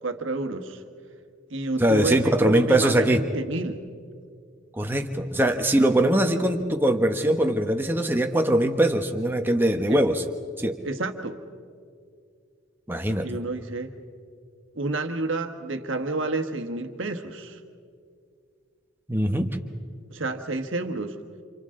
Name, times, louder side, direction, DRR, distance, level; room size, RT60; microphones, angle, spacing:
voice 1, 0.0-0.8 1.5-3.8 9.9-10.0 10.8-11.4 13.2-13.9 14.7-17.6 20.1-21.1, right 2 dB, 70° right, 6 dB, 1.5 m, -29 dB
voice 2, 1.8-3.2 4.7-10.2 10.6-10.8 12.9-13.3 19.1-19.6, right 1 dB, 10° right, 4 dB, 1.1 m, -22 dB
29.0 x 28.5 x 3.8 m, 2.2 s
head